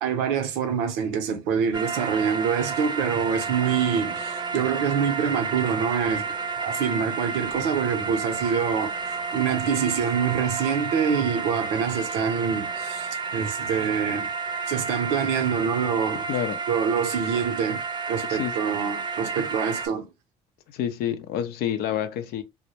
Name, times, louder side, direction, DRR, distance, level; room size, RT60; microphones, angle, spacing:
voice 1, 0.0-6.3 6.6-8.9 9.3-14.3 14.7-16.3 16.7-20.1, right 7 dB, 70° right, 0.6 m, -26 dB
sound 1, 1.7-19.9, right 5 dB, 25° right, 0.6 m, -31 dB
voice 2, 20.7-22.4, left 10 dB, 65° left, 0.5 m, -28 dB
2.2 x 2.0 x 2.8 m
hypercardioid pair, 70°, 18 cm